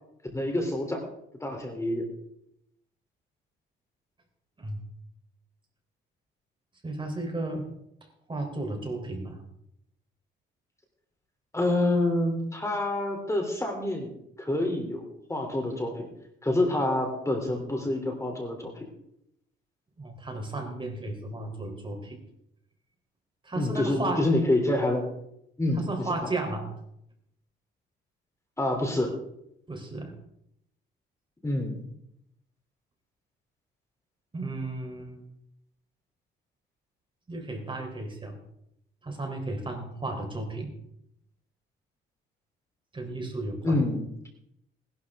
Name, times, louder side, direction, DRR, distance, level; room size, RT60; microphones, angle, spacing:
voice 1, 0.3-1.0 1.4-2.1 11.5-16.1 16.4-18.7 23.6-25.1 25.6-25.9 28.6-29.2 31.4-31.8 43.6-44.0, left 1 dB, 15° left, 2 dB, 3.4 m, -27 dB
voice 2, 6.8-7.7 8.3-9.4 20.0-22.2 23.4-24.3 25.7-26.7 29.7-30.1 34.3-35.2 37.3-38.4 39.0-40.7 42.9-43.8, right 2 dB, 25° right, 3 dB, 4.0 m, -34 dB
20.0 x 12.0 x 3.7 m, 0.76 s
cardioid pair, 90°, 20 cm